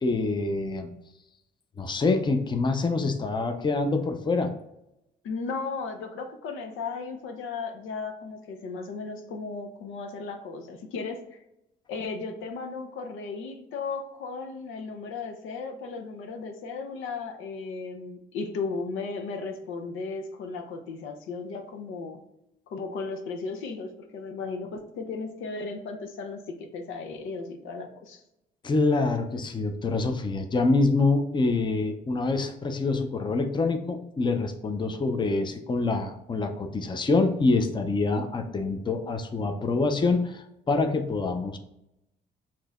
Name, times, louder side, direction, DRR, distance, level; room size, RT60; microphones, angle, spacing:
voice 1, 0.0-0.9 1.8-4.5 28.6-41.6, left 3 dB, 25° left, 6 dB, 0.5 m, -26 dB
voice 2, 5.2-11.4 11.9-22.2 22.7-28.2, left 4 dB, 85° left, 5 dB, 0.7 m, -35 dB
6.0 x 2.8 x 2.4 m, 0.86 s
cardioid pair, 90°, 20 cm